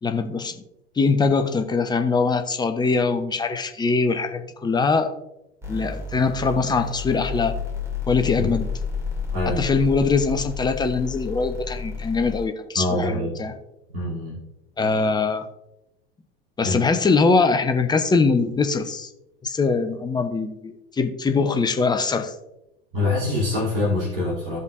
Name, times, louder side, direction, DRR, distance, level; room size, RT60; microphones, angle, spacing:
voice 1, 0.0-0.6 1.0-5.1 5.7-7.5 8.1-8.7 9.6-13.5 14.8-15.5 16.6-19.1 19.4-22.3, left 4 dB, 15° left, 7 dB, 0.7 m, -22 dB
sound 1, 5.6-12.5, left 5 dB, 10° right, 2.3 m, -31 dB
voice 2, 9.3-9.6 12.7-13.3 13.9-14.4 16.6-16.8 22.9-24.6, left 2 dB, 65° right, -6 dB, 2.9 m, -24 dB
15.0 x 5.3 x 2.5 m, 0.89 s
figure-of-eight pair, 75°, 31 cm